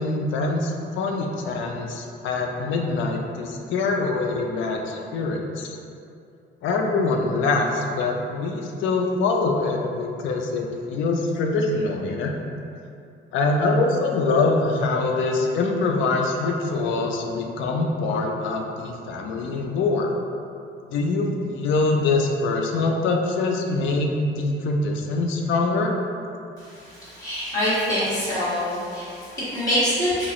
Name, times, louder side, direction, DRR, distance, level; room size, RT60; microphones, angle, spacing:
voice 1, 0.0-5.7 6.6-12.3 13.3-20.1 20.9-26.0, left 3 dB, 75° left, 2 dB, 0.4 m, -24 dB
voice 2, 26.6-30.3, equal, 20° left, -14 dB, 1.4 m, -25 dB
2.9 x 2.4 x 2.9 m, 2.6 s
cardioid pair, 155°, 20 cm